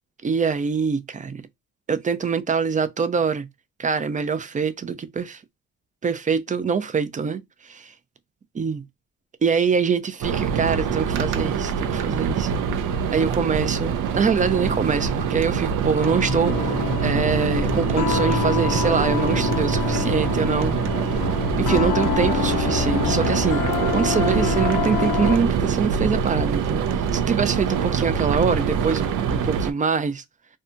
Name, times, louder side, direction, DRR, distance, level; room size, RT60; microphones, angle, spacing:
voice 1, 0.2-1.4 1.9-3.5 3.8-5.4 6.0-7.9 8.6-8.8 9.4-12.7 13.1-21.2 21.6-23.6 23.9-30.2, right 6 dB, 25° right, 0.4 m, -24 dB
sound 1, 10.2-29.7, right 7 dB, 75° right, 0.5 m, -24 dB
sound 2, 16.0-25.5, left 7 dB, 80° left, 0.5 m, -26 dB
2.7 x 2.2 x 2.5 m
cardioid pair, 100°, 32 cm